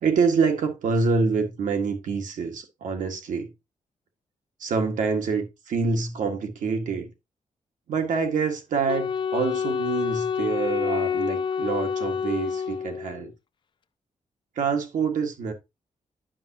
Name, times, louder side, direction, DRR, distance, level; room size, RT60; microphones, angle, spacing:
voice 1, 0.0-3.5 4.6-7.1 7.9-13.3 14.6-15.5, right 5 dB, 85° right, 1.7 m, -26 dB
Wind instrument woodwind instrument, 8.9-13.3, left 7 dB, 40° left, 0.4 m, -28 dB
11.0 x 5.7 x 2.8 m
wide cardioid pair, 170°, 13 cm